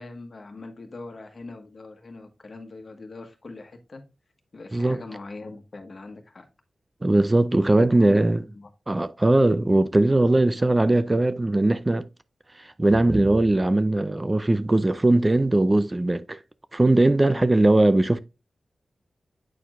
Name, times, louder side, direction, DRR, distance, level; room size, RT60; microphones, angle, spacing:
voice 1, 0.0-4.0 4.5-6.5 7.6-8.7 17.2-17.5, left 3 dB, 55° left, 1.3 m, -41 dB
voice 2, 7.0-8.4 8.9-12.1 12.8-16.4 16.7-18.2, right 2 dB, 25° right, 0.4 m, -20 dB
8.4 x 4.5 x 2.5 m
cardioid pair, 60°, 0 cm